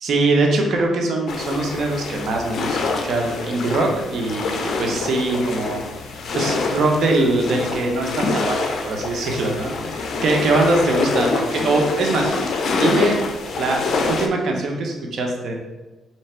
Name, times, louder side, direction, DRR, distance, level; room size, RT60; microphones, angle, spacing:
voice 1, 0.0-5.8 6.3-8.6 8.8-12.3 12.8-13.2 13.6-15.6, right 2 dB, 60° right, 1 dB, 0.8 m, -22 dB
sound 1, 1.3-14.3, left 3 dB, 60° left, 0.5 m, -26 dB
3.3 x 3.1 x 4.3 m, 1.2 s
cardioid pair, 90°, 0 cm